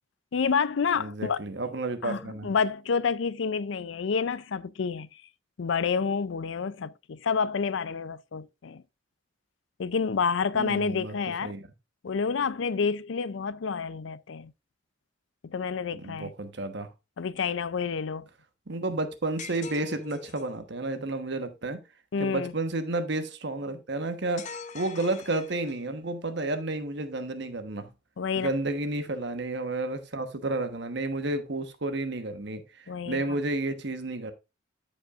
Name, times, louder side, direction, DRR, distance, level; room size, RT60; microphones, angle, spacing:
voice 1, 0.3-1.4 2.0-5.1 5.6-8.8 9.8-11.5 12.0-14.5 15.4-16.3 17.2-18.3 22.1-22.5 28.2-28.5 32.9-33.4, left 5 dB, 75° left, 0.5 m, -29 dB
voice 2, 1.0-2.5 10.5-11.1 11.4-11.6 15.9-16.9 18.7-21.8 22.2-27.9 28.3-34.3, right 2 dB, 60° right, 1.2 m, -31 dB
sound 1, 19.4-20.6 24.4-26.0, left 5 dB, 40° left, 0.7 m, -42 dB
13.5 x 5.3 x 2.5 m
head